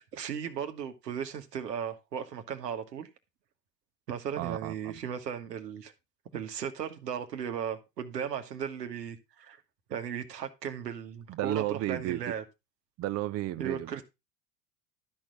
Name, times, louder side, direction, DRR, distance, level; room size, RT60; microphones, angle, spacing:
voice 1, 0.0-3.1 4.1-5.9 6.3-9.6 9.9-12.4 13.6-14.0, right 8 dB, 85° right, 1.6 m, -36 dB
voice 2, 4.4-4.9 11.3-12.3 13.0-13.9, right 14 dB, 35° right, 0.6 m, -33 dB
12.5 x 4.6 x 5.2 m
hypercardioid pair, 85°, 47 cm